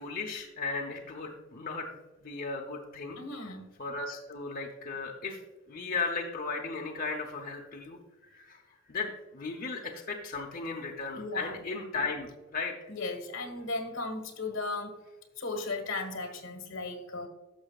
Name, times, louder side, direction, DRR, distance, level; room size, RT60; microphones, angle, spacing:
voice 1, 0.0-3.2 3.8-5.4 5.7-12.9, left 4 dB, 45° left, 0 dB, 0.8 m, -36 dB
voice 2, 3.2-3.6 11.1-11.6 12.9-15.0 15.4-17.3, left 3 dB, 75° left, 5 dB, 1.4 m, -36 dB
11.5 x 6.8 x 2.4 m, 1.1 s
head